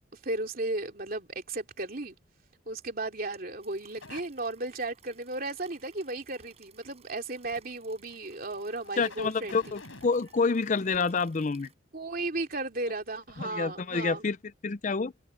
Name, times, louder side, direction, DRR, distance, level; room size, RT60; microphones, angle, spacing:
voice 1, 0.2-2.2 2.7-9.6 11.9-14.2, right 2 dB, 45° right, 3.1 m, -35 dB
sound 1, 3.6-11.7, right 7 dB, 30° right, 6.6 m, -60 dB
sound 2, 4.0-4.2 7.3-7.6 8.1-8.2 8.7-11.0 12.8-12.9 13.2-13.4 13.8-13.9, left 3 dB, 85° left, 5.4 m, -49 dB
voice 2, 9.0-11.7 13.4-14.4 14.6-15.1, left 4 dB, 40° left, 0.5 m, -28 dB
head